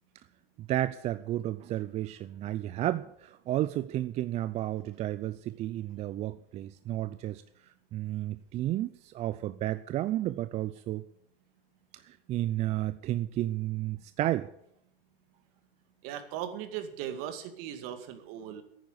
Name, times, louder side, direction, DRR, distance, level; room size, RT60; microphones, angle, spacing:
voice 1, 0.6-7.4 7.9-11.0 11.9-14.5, right 14 dB, 25° right, 13 dB, 0.4 m, -32 dB
voice 2, 16.0-18.6, right 10 dB, 45° right, 7 dB, 2.2 m, -38 dB
10.5 x 9.3 x 9.3 m, 0.74 s
hypercardioid pair, 120°, 29 cm